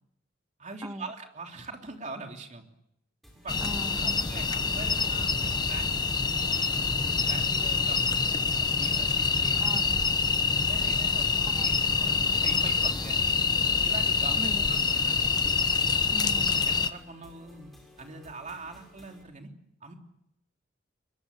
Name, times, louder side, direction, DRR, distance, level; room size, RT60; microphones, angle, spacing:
voice 1, 0.6-2.6 3.4-3.6 3.9-7.0 7.3-8.3 8.8-9.7 10.5-13.4 13.8-15.2 16.6-19.5 19.8-19.9, right 3 dB, 40° right, 3 dB, 3.3 m, -43 dB
sound 1, 3.2-19.2, left 1 dB, ahead, 7.0 m, -55 dB
sound 2, 3.5-16.9, left 5 dB, 20° left, 1.0 m, -26 dB
voice 2, 3.6-4.2 9.6-10.0 10.9-11.0 11.5-11.7 14.4-14.6 16.1-16.7, right 1 dB, 20° right, 8 dB, 1.3 m, -39 dB
23.0 x 22.5 x 8.4 m, 0.80 s
head